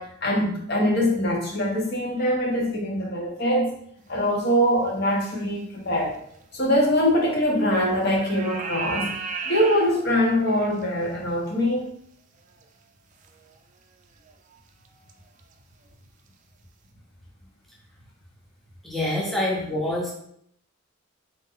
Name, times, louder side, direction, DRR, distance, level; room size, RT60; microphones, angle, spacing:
voice 1, 0.0-3.7 4.1-6.2 6.5-9.1 9.4-11.9, equal, 50° left, -2 dB, 1.0 m, -23 dB
sound 1, 5.2-5.4 6.6-6.7 7.5-7.8 8.1-10.8 12.6-12.7 13.2-13.3 14.3-14.6 14.8-15.1 15.4-15.5, right 5 dB, 35° right, 0.4 m, -34 dB
voice 2, 18.8-20.1, left 1 dB, ahead, -5 dB, 0.7 m, -26 dB
4.3 x 2.7 x 3.7 m, 0.69 s
head